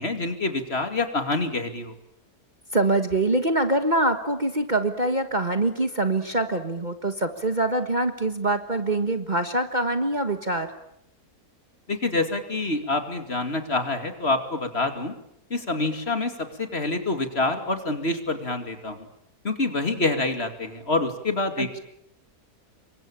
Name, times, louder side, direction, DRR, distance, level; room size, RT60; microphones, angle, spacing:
voice 1, 0.0-1.9 11.9-15.1 15.5-16.3 16.6-19.0 19.4-21.8, left 2 dB, 40° left, 7 dB, 2.8 m, -26 dB
voice 2, 2.7-10.7 21.6-21.8, right 2 dB, 30° right, 8 dB, 1.6 m, -24 dB
28.0 x 24.0 x 8.9 m, 0.75 s
omnidirectional pair, 1.7 m